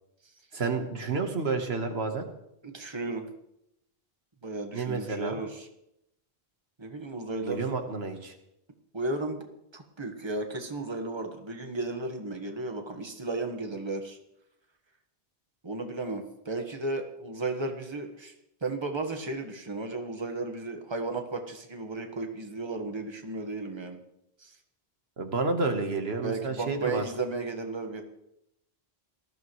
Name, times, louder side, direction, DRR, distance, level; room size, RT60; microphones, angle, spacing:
voice 1, 0.5-2.2 4.7-5.4 7.4-8.3 25.2-27.0, right 4 dB, 80° right, 6 dB, 1.6 m, -30 dB
voice 2, 2.6-3.3 4.4-5.7 6.8-7.7 8.9-9.5 9.7-14.2 15.6-18.3 18.6-24.0 24.4-24.5 26.2-28.0, right 2 dB, 25° right, 4 dB, 1.4 m, -34 dB
19.5 x 14.0 x 3.2 m, 0.81 s
omnidirectional pair, 1.0 m